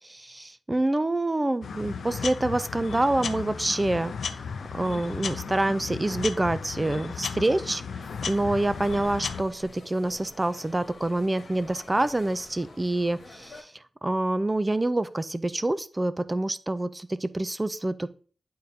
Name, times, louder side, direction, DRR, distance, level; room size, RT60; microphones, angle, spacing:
voice 1, 0.0-4.4 4.7-13.7 14.0-18.1, right 2 dB, 15° right, 13 dB, 0.4 m, -27 dB
sound 1, 1.6-9.4, left 5 dB, 90° left, 0.5 m, -35 dB
sound 2, 8.0-13.6, left 2 dB, 65° left, 1.6 m, -48 dB
10.5 x 3.8 x 2.8 m, 0.40 s
wide cardioid pair, 150°, 0 cm